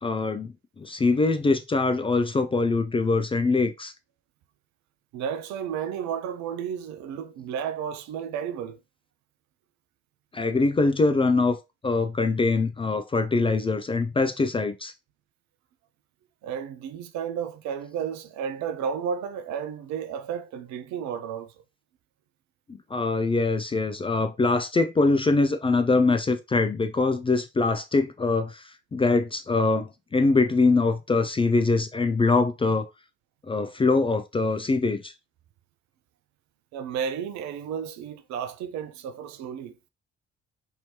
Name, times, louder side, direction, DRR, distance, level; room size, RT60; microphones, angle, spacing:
voice 1, 0.0-3.9 10.3-11.6 11.8-14.9 22.9-32.9 33.5-35.1, left 3 dB, 15° left, 0.4 m, -23 dB
voice 2, 5.1-8.8 16.4-21.5 36.7-39.8, right 7 dB, 60° right, 0.5 m, -32 dB
2.9 x 2.8 x 2.9 m
figure-of-eight pair, 40°, 33 cm